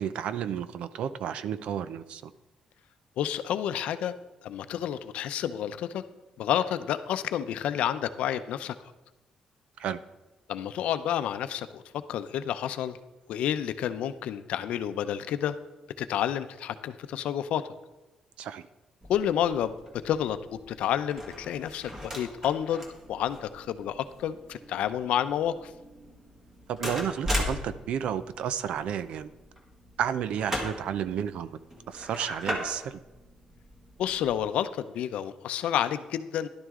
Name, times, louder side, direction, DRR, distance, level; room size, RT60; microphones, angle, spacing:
voice 1, 0.0-2.3 9.8-10.0 18.4-18.7 26.7-29.3 30.0-31.6 31.9-33.0, right 9 dB, 70° right, 14 dB, 0.5 m, -32 dB
voice 2, 3.2-4.1 4.4-6.0 6.4-8.8 10.5-11.8 12.1-13.0 13.3-15.6 16.0-17.6 19.1-19.7 20.0-20.4 20.7-25.7 34.0-36.5, left 10 dB, 85° left, 11 dB, 0.6 m, -30 dB
sound 1, 19.0-34.5, equal, 20° right, 2.0 m, -39 dB
12.5 x 11.5 x 3.7 m, 1.1 s
cardioid pair, 180°, 2 cm